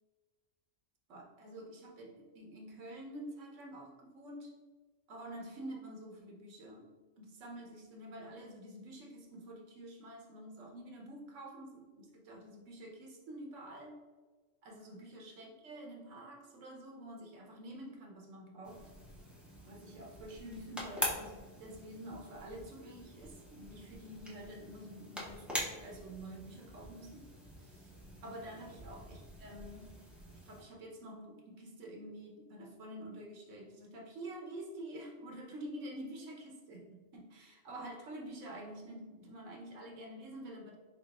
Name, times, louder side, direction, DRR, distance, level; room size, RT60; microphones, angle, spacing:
voice 1, 1.1-4.6 5.1-6.9 7.2-14.0 14.6-18.8 19.6-27.3 27.6-27.9 28.2-30.1 30.4-40.8, right 1 dB, 80° right, 0 dB, 1.1 m, -48 dB
sound 1, 18.6-30.6, equal, ahead, 0.4 m, -44 dB
4.0 x 4.0 x 2.3 m, 1.4 s
omnidirectional pair, 1.3 m